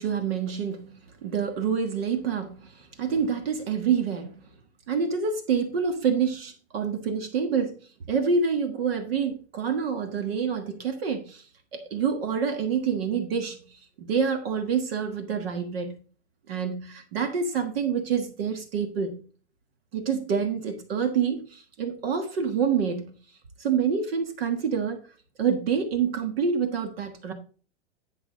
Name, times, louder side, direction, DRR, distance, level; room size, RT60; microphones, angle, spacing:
voice 1, 0.0-4.4 4.9-7.7 8.1-11.5 11.7-16.0 16.5-19.2 19.9-23.1 23.6-25.0 25.4-27.3, right 6 dB, 55° right, 1.4 m, -27 dB
10.5 x 5.8 x 3.8 m
supercardioid pair, 175°, 36 cm